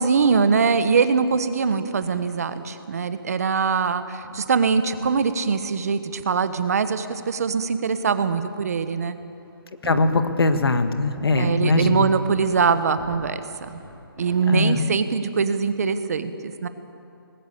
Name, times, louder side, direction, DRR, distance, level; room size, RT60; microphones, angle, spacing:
voice 1, 0.0-9.2 11.4-13.4 14.2-16.7, right 5 dB, 40° right, 11 dB, 1.1 m, -22 dB
sound 1, 1.9-2.2 2.5-2.8 4.2-4.6 4.9-5.2 6.5-6.7 7.6-7.7 8.3-8.4 8.9-9.0 9.2-10.2 10.5-10.8 11.2-11.5 11.7-12.7 13.0-13.3 13.6-14.5, equal, 10° left, 6.5 m, -42 dB
voice 2, 9.8-12.1 14.5-14.8, left 3 dB, 75° left, 9 dB, 1.7 m, -21 dB
20.0 x 18.0 x 8.4 m, 2.6 s
hypercardioid pair, 175°, 13 cm